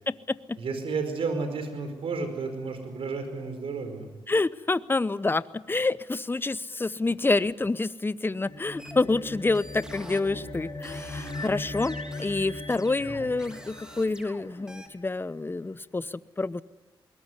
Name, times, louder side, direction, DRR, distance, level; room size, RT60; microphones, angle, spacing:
voice 1, 0.1-0.6 4.3-16.6, left 3 dB, 25° left, 17 dB, 0.8 m, -28 dB
voice 2, 0.6-4.1 13.0-13.4, right 4 dB, 85° right, 8 dB, 4.8 m, -32 dB
sound 1, 8.3-15.0, left 2 dB, 45° left, 7.0 m, -39 dB
sound 2, 8.8-14.9, equal, 10° right, 3.2 m, -47 dB
21.5 x 19.0 x 9.7 m, 1.1 s
cardioid pair, 60°, 9 cm